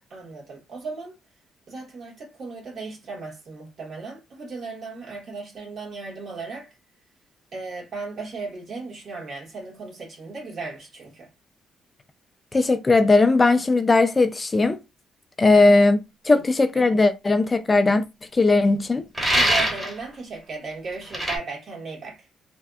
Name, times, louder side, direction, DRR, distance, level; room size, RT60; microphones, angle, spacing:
voice 1, 0.1-1.1 1.7-6.8 7.5-11.3 15.5-15.6 16.3-16.4 19.3-22.3, right 4 dB, 55° right, 1.6 m, -36 dB
voice 2, 12.5-14.8 15.4-16.0 16.2-18.0 18.3-19.0, left 3 dB, 25° left, 0.5 m, -18 dB
sound 1, 19.1-20.0 21.1-21.4, equal, 10° right, 1.3 m, -22 dB
3.2 x 2.7 x 2.4 m
cardioid pair, 90°, 0 cm